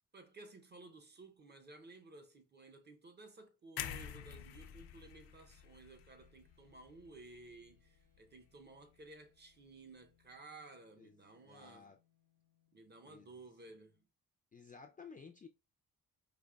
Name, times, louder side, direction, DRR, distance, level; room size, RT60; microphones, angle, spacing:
voice 1, 0.1-11.9 12.7-14.1, right 3 dB, 30° right, 0.6 m, -56 dB
sound 1, 3.7-14.0, left 8 dB, 60° right, 1.7 m, -76 dB
sound 2, 3.8-7.8 8.1-8.4, left 11 dB, 90° left, 0.5 m, -48 dB
voice 2, 11.0-12.0 13.0-13.4 14.5-15.5, left 5 dB, 25° left, 0.3 m, -55 dB
5.1 x 2.9 x 2.2 m
cardioid pair, 130°, 37 cm